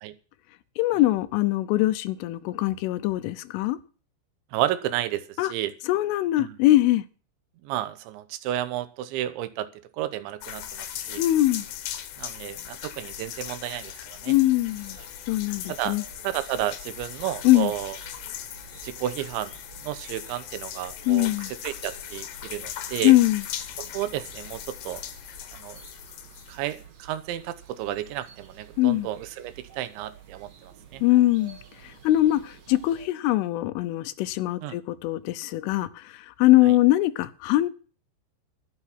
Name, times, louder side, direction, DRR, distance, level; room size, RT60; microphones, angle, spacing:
voice 1, 0.8-3.8 5.4-5.5 5.9-7.1 11.2-11.7 14.3-15.0 15.3-16.0 17.5-17.7 21.1-21.5 23.0-23.4 28.8-29.1 31.0-31.6 31.8-37.7, left 16 dB, 90° left, 3.4 m, -22 dB
voice 2, 4.5-5.2 5.5-5.7 6.4-6.6 7.6-9.7 10.0-11.2 12.2-14.3 15.7-16.0 16.2-18.0 18.8-19.6 19.8-21.3 21.6-23.1 23.8-25.0 25.5-25.8 26.5-31.0 34.6-34.8 36.7-36.8, right 13 dB, 80° right, 3.1 m, -32 dB
sound 1, 10.4-26.9, left 11 dB, 70° left, 3.3 m, -39 dB
sound 2, 14.3-33.1, right 8 dB, 45° right, 2.6 m, -51 dB
12.0 x 9.9 x 6.0 m
omnidirectional pair, 5.5 m